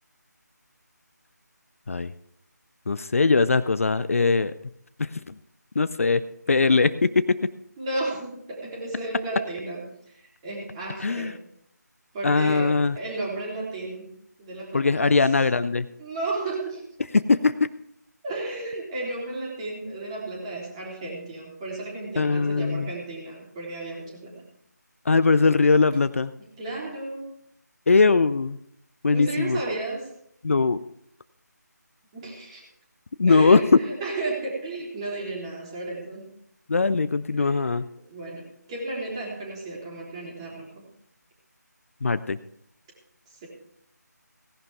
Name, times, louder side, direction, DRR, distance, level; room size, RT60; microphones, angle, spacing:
voice 1, 2.9-4.5 5.0-5.3 5.8-6.2 6.5-7.4 11.0-11.4 12.2-13.0 14.7-15.9 17.1-17.7 22.2-22.9 25.1-26.3 27.9-28.6 29.0-29.6 30.4-30.8 33.2-33.8 36.7-37.9 42.0-42.4, left 4 dB, 50° left, 14 dB, 0.5 m, -21 dB
voice 2, 7.8-9.8 10.1-11.4 12.1-14.1 14.4-15.2 16.0-16.8 18.2-24.4 26.4-27.2 29.1-30.1 32.1-32.6 33.3-36.3 37.4-37.6 38.1-40.9 43.4-43.5, right 2 dB, 20° right, -3 dB, 3.5 m, -33 dB
17.5 x 11.0 x 3.5 m, 0.72 s
figure-of-eight pair, 160°, 10 cm